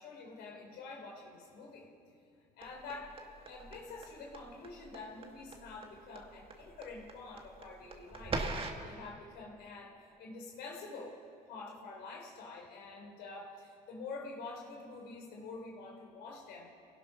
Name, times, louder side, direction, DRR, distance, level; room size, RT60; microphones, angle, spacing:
voice 1, 0.0-1.9 2.6-3.1 3.4-8.4 8.8-11.1 11.5-16.7, left 3 dB, 80° left, -1 dB, 3.9 m, -47 dB
sound 1, 2.6-8.9, right 3 dB, 35° right, 1.8 m, -42 dB
26.0 x 17.5 x 5.8 m, 2.4 s
cardioid pair, 110°, 17 cm